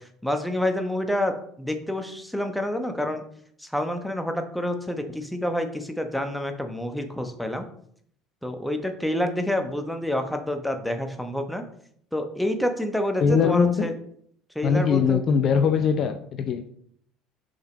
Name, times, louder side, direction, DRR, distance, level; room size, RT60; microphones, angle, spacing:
voice 1, 0.0-3.2 3.6-7.7 8.4-11.6 12.1-13.9 14.5-15.2, left 1 dB, ahead, 6 dB, 1.0 m, -28 dB
voice 2, 13.2-13.9 14.6-16.7, left 6 dB, 45° left, 9 dB, 0.6 m, -22 dB
6.7 x 5.3 x 4.0 m, 0.66 s
figure-of-eight pair, 60°, 0 cm